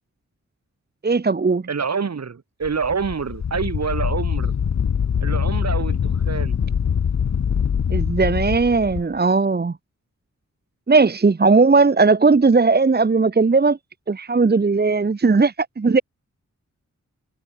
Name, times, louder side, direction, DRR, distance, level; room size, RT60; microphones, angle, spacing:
voice 1, 1.0-1.7 7.9-9.7 10.9-13.8 14.1-16.0, right 4 dB, 30° right, 1.1 m, -17 dB
voice 2, 1.7-4.5 5.2-6.6, right 5 dB, 60° right, 2.3 m, -26 dB
Wind, 2.6-9.0, left 7 dB, 65° left, 1.0 m, -23 dB
wide cardioid pair, 110°, 31 cm